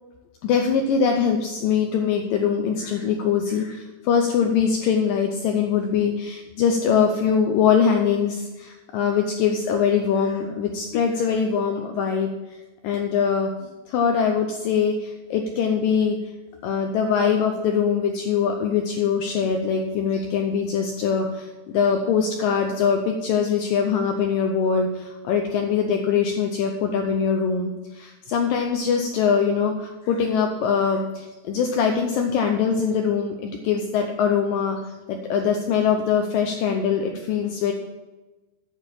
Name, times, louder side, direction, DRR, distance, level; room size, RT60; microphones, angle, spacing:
voice 1, 0.4-12.3 12.8-13.5 13.9-16.2 16.6-37.7, left 6 dB, 90° left, 4 dB, 1.9 m, -22 dB
8.7 x 7.2 x 7.2 m, 1.1 s
omnidirectional pair, 4.8 m